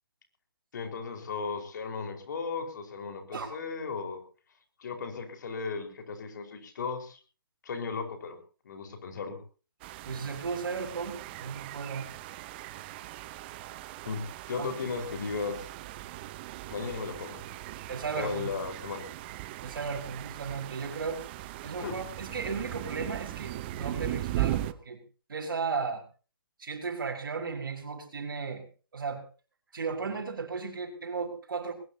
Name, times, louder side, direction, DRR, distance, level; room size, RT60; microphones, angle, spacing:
voice 1, 0.7-4.2 4.8-7.2 7.6-8.4 8.6-9.4 14.0-14.2 14.5-15.7 16.7-17.4 18.1-19.0 21.8-22.0, left 5 dB, 55° left, 6 dB, 4.7 m, -36 dB
sound 1, 9.8-24.7, right 15 dB, 30° right, 0.9 m, -39 dB
voice 2, 10.0-12.1 14.6-14.7 17.9-18.5 19.6-21.2 21.6-25.0 25.3-26.0 26.6-28.7 28.9-29.2 29.7-31.7, right 5 dB, 65° right, -2 dB, 5.1 m, -35 dB
20.5 x 20.0 x 2.9 m, 0.37 s
hypercardioid pair, 145°, 12 cm